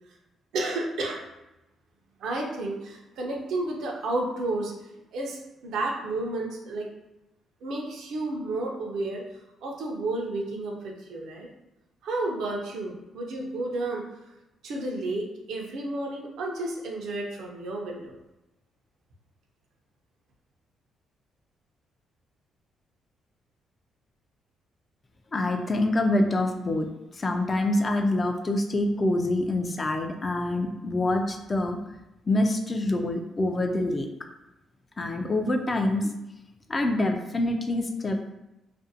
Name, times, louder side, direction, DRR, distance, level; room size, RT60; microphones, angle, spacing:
voice 1, 0.5-1.2 2.2-4.7 5.1-6.9 7.6-9.2 9.6-11.5 12.0-14.0 14.6-18.2, right 2 dB, 80° right, 0 dB, 0.5 m, -31 dB
voice 2, 25.3-26.9 27.1-31.8 32.3-34.1 35.0-36.1 36.7-38.3, left 1 dB, 30° left, 5 dB, 0.3 m, -26 dB
2.5 x 2.0 x 2.6 m, 0.95 s
cardioid pair, 90°, 0 cm